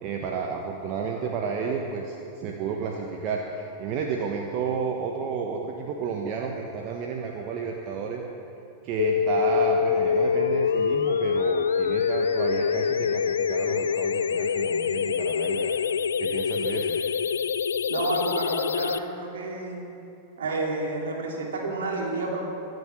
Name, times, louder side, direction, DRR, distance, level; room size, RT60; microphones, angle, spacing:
voice 1, 0.0-8.2 8.8-15.8 16.2-17.0, right 5 dB, 40° right, 1 dB, 1.3 m, -31 dB
sound 1, 9.0-19.0, left 6 dB, 70° left, 0.4 m, -25 dB
voice 2, 17.9-19.8 20.4-22.5, right 2 dB, 65° right, -1 dB, 2.9 m, -30 dB
24.0 x 8.1 x 6.1 m, 2.7 s
figure-of-eight pair, 90°, 0 cm